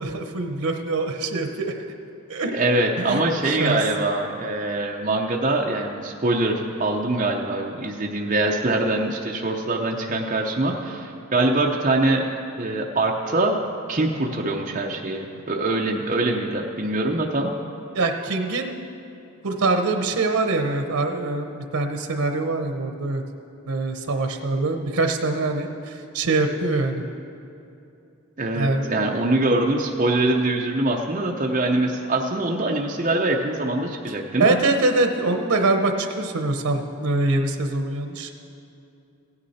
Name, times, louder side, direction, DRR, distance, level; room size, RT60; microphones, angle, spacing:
voice 1, 0.0-1.8 2.3-2.6 3.0-3.8 17.9-18.8 19.4-23.2 23.6-27.0 28.5-29.2 34.4-38.3, right 3 dB, 80° right, 6 dB, 0.8 m, -24 dB
voice 2, 2.5-12.3 12.6-13.6 13.9-17.5 28.4-34.6, right 2 dB, 35° right, 0 dB, 0.7 m, -23 dB
16.0 x 9.7 x 4.2 m, 2.7 s
head